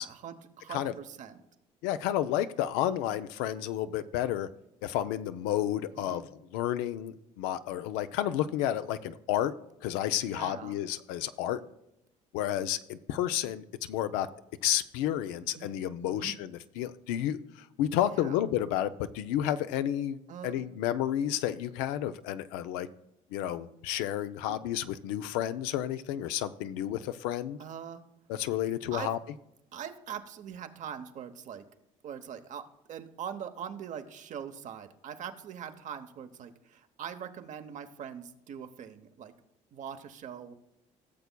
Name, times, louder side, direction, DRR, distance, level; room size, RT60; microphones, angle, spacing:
voice 1, 0.0-1.4 5.9-6.2 10.3-10.8 15.6-15.7 16.0-16.3 18.1-18.4 20.3-20.6 24.5-24.6 27.6-28.0 28.9-29.1 29.7-31.6 32.0-39.3 39.7-40.5, right 8 dB, 60° right, 9 dB, 0.8 m, -42 dB
voice 2, 1.8-4.5 4.8-6.2 6.5-9.5 9.8-11.6 12.3-14.3 14.6-20.2 20.4-22.9 23.3-27.6 28.3-29.2, left 12 dB, 90° left, 12 dB, 0.4 m, -31 dB
16.5 x 6.8 x 2.2 m, 0.85 s
supercardioid pair, 75°, 15 cm